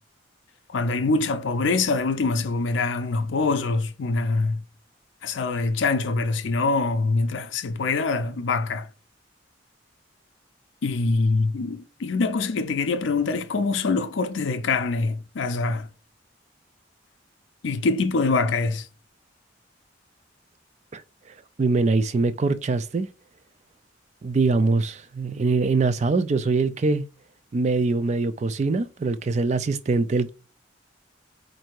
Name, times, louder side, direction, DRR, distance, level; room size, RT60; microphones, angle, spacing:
voice 1, 0.7-4.6 5.2-8.9 10.8-15.9 17.6-18.9, left 3 dB, 75° left, 0.5 m, -24 dB
voice 2, 21.6-23.1 24.2-27.0 27.5-30.3, right 3 dB, 35° right, 0.3 m, -23 dB
4.4 x 2.6 x 4.5 m
head